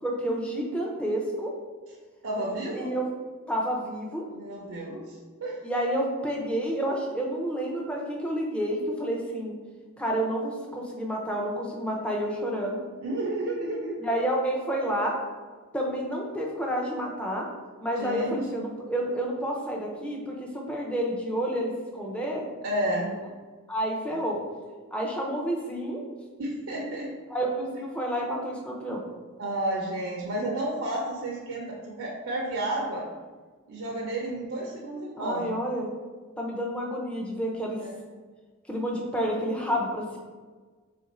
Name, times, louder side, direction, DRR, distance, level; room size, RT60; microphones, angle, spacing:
voice 1, 0.0-1.5 2.7-3.0 3.5-4.2 5.6-9.6 10.0-12.8 14.0-15.1 15.7-17.5 17.8-22.4 23.0-23.1 23.7-24.4 24.9-26.0 27.3-29.0 35.2-35.9 36.4-37.8 38.7-40.2, equal, 5° left, -2 dB, 0.5 m, -29 dB
voice 2, 2.2-2.9 4.3-5.6 13.0-14.0 18.0-18.7 22.6-23.1 24.1-24.2 26.4-27.1 29.4-33.0 33.7-35.5 37.8-38.0, right 1 dB, 70° right, -2 dB, 0.6 m, -31 dB
3.6 x 2.5 x 4.1 m, 1.4 s
head